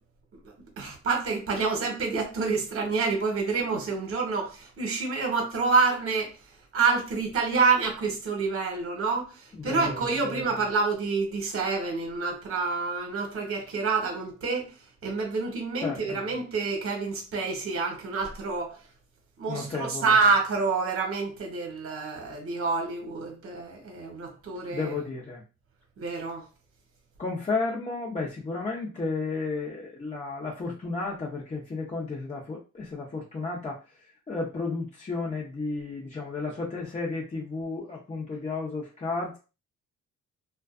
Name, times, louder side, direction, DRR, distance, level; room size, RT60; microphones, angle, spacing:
voice 1, 0.4-6.4 6.7-18.8 19.4-24.9 26.0-26.4, right 4 dB, 45° right, 1.0 m, -27 dB
voice 2, 9.5-10.4 15.8-16.2 19.5-20.1 24.7-25.4 27.2-33.8 34.3-39.4, left 3 dB, 25° left, 0.6 m, -33 dB
2.4 x 2.2 x 2.4 m
cardioid pair, 90°, 30 cm